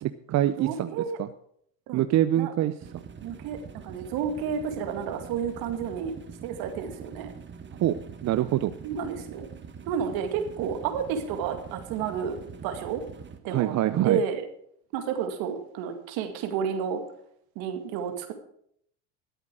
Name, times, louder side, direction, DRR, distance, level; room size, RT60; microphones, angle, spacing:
voice 1, 0.0-1.3 1.9-2.7 7.8-8.7 13.5-14.2, right 13 dB, 50° right, 12 dB, 0.6 m, -25 dB
voice 2, 0.6-1.2 1.9-2.0 2.4-2.5 3.2-3.6 3.8-6.1 6.4-7.3 8.8-9.5 9.9-12.4 12.6-13.0 13.4-13.7 14.0-14.5 14.9-17.0 17.6-18.3, right 7 dB, 75° right, 6 dB, 2.3 m, -31 dB
sound 1, 2.8-13.4, right 6 dB, 30° right, 1.6 m, -44 dB
13.0 x 8.2 x 6.2 m, 0.68 s
supercardioid pair, 85°, 37 cm